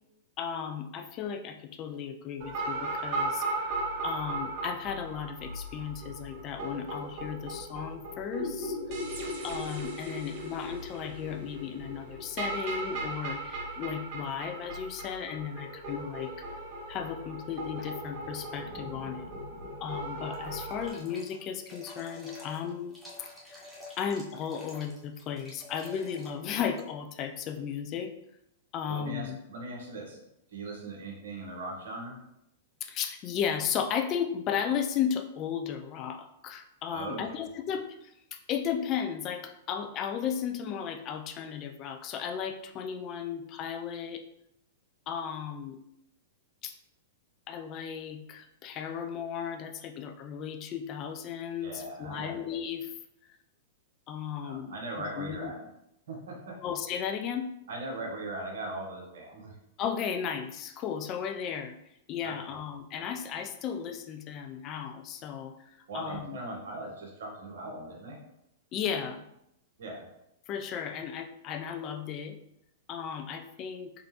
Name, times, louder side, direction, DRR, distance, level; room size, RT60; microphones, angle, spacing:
voice 1, 0.4-3.7 4.0-8.8 9.4-16.5 16.9-19.3 19.8-23.0 24.0-28.1 28.7-29.4 32.8-44.2 45.1-45.8 46.6-46.7 47.5-52.9 54.1-55.5 56.6-57.5 59.8-61.8 62.1-65.5 65.9-66.4 68.7-69.2 70.5-72.4 72.9-73.9, left 8 dB, 35° left, 6 dB, 0.4 m, -35 dB
sound 1, 2.4-20.9, right 1 dB, 50° right, 0.9 m, -37 dB
sound 2, 20.3-26.9, left 2 dB, 5° right, 1.0 m, -49 dB
voice 2, 28.9-30.2 30.5-32.2 36.9-37.5 51.6-52.3 54.4-55.7 56.1-56.6 57.7-59.5 62.2-62.3 65.9-68.2 69.8-70.0, right 2 dB, 70° right, 1 dB, 1.1 m, -39 dB
3.6 x 3.4 x 2.9 m, 0.80 s
hypercardioid pair, 105°, 0 cm